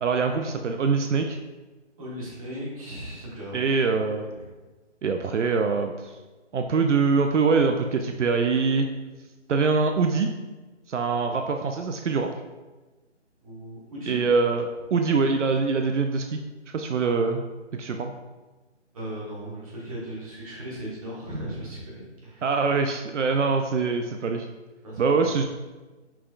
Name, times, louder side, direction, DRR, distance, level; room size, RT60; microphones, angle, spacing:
voice 1, 0.0-1.4 3.5-4.3 5.0-6.1 6.5-8.9 9.5-10.4 10.9-12.3 14.1-16.4 16.7-17.4 17.7-18.1 22.4-24.5 25.0-25.5, right 4 dB, 85° right, 5 dB, 0.5 m, -24 dB
voice 2, 2.0-3.6 4.3-4.5 13.4-14.2 18.9-22.5 24.8-25.3, equal, 30° right, -6 dB, 1.4 m, -37 dB
5.9 x 3.3 x 2.4 m, 1.2 s
figure-of-eight pair, 155°, 35 cm